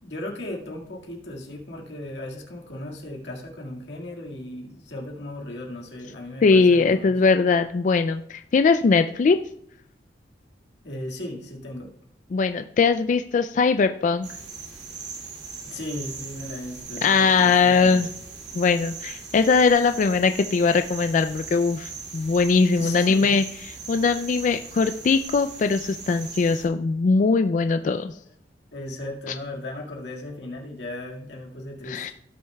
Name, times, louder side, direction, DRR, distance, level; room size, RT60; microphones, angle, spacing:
voice 1, 0.0-7.2 10.8-11.9 15.6-18.1 22.8-23.4 28.1-28.2 28.7-32.1, left 1 dB, 75° left, 0 dB, 1.9 m, -36 dB
voice 2, 6.4-9.4 12.3-14.3 17.0-18.1 18.5-23.4 23.9-28.2 31.8-32.1, left 4 dB, 45° left, 9 dB, 0.3 m, -20 dB
sound 1, 14.2-26.7, right 5 dB, 80° right, 2.2 m, -39 dB
16.5 x 6.2 x 2.3 m, 0.73 s
head